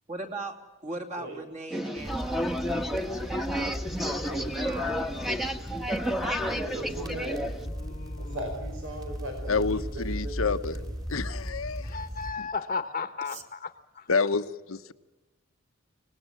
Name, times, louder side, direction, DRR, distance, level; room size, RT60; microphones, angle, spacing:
voice 1, 0.1-0.5 0.8-2.5 3.9-5.5 13.2-13.4, right 2 dB, 35° right, 2.9 m, -40 dB
sound 1, 1.7-7.7, equal, ahead, 1.3 m, -31 dB
sound 2, 2.0-12.3, equal, 20° right, 2.7 m, -37 dB
voice 2, 4.3-4.7 6.6-7.4 8.2-10.8, right 1 dB, 80° right, 5.0 m, -39 dB
voice 3, 7.5-8.5 11.8-13.7 13.9-14.1, left 5 dB, 40° left, 1.1 m, -35 dB
voice 4, 9.5-10.8 11.1-12.0 12.4-12.5 14.1-14.9, left 4 dB, 85° left, 1.0 m, -28 dB
25.0 x 20.0 x 7.5 m
head